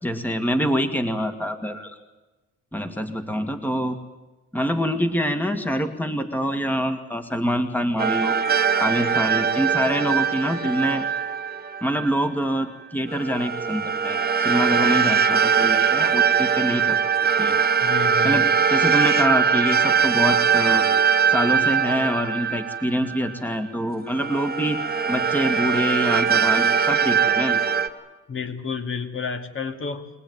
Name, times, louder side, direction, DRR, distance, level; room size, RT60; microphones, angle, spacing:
voice 1, 0.0-2.0 2.7-4.0 4.5-8.4 8.8-11.1 11.8-17.0 17.4-17.6 18.2-20.9 21.3-24.8 25.1-27.6, equal, 5° left, 7 dB, 2.0 m, -25 dB
sound 1, 8.0-12.2 13.1-23.5 24.1-27.9, right 6 dB, 30° right, 1.8 m, -21 dB
voice 2, 17.8-18.4 28.3-30.1, left 5 dB, 45° left, 7 dB, 2.4 m, -30 dB
24.0 x 18.0 x 9.6 m, 1.1 s
cardioid pair, 90°, 30 cm